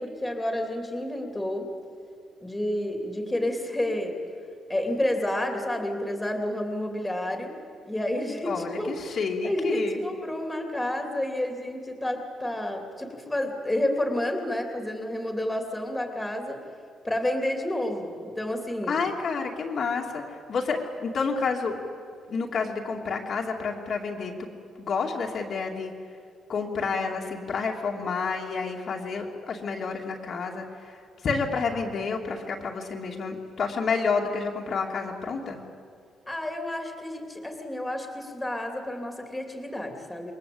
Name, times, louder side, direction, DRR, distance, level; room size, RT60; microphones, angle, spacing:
voice 1, 0.0-1.7 2.4-4.2 4.7-7.6 7.9-9.0 9.4-16.6 17.0-19.0 36.3-40.3, left 1 dB, 5° left, 3 dB, 3.0 m, -30 dB
voice 2, 8.5-10.0 18.9-21.7 22.3-24.5 24.8-25.9 26.5-35.6, left 4 dB, 40° left, 0 dB, 2.6 m, -29 dB
28.0 x 22.5 x 8.7 m, 2.3 s
cardioid pair, 160°, 0 cm